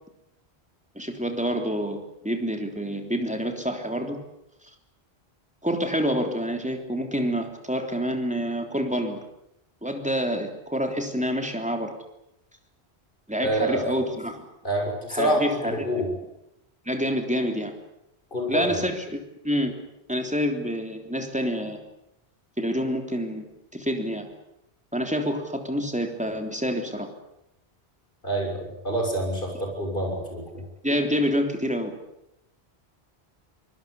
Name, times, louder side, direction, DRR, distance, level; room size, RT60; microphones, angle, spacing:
voice 1, 1.0-4.2 5.6-9.2 9.8-11.9 13.3-14.5 15.1-15.9 16.9-17.7 18.5-19.7 20.1-21.8 22.6-23.5 23.7-24.3 24.9-27.1 30.8-31.9, equal, 5° right, 4 dB, 3.4 m, -27 dB
voice 2, 13.4-13.8 14.6-16.1 18.3-18.8 28.2-30.6, right 1 dB, 55° left, 3 dB, 6.9 m, -27 dB
24.5 x 20.0 x 8.4 m, 0.83 s
omnidirectional pair, 1.1 m